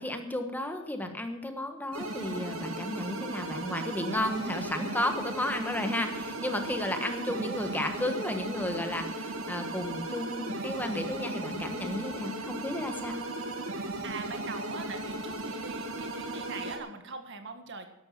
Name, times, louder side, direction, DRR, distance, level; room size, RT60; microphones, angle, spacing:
voice 1, 0.0-13.2, left 1 dB, 10° left, 6 dB, 1.3 m, -33 dB
sound 1, 1.9-16.8, right 2 dB, 75° right, 2.5 m, -36 dB
voice 2, 13.8-17.9, right 4 dB, 60° right, 7 dB, 1.8 m, -42 dB
12.5 x 11.5 x 6.0 m, 0.87 s
head